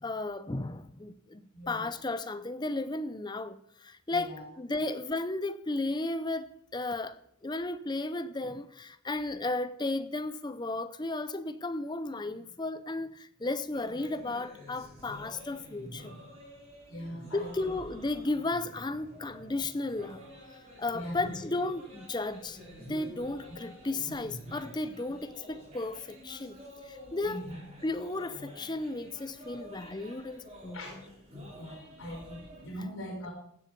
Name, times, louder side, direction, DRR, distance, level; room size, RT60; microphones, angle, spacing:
voice 1, 0.0-1.4 1.7-7.2 7.4-16.2 17.3-20.2 20.8-26.6 26.9-27.5 27.8-31.0, left 2 dB, 20° left, 0.5 m, -34 dB
voice 2, 1.5-1.9 4.1-4.4 4.7-4.8 16.9-17.5 20.9-21.3 27.2-27.5 30.7-31.0 31.5-33.3, equal, 70° left, 5.0 m, -41 dB
sound 1, 13.7-32.7, equal, 25° right, 3.7 m, -49 dB
16.0 x 7.4 x 5.3 m
head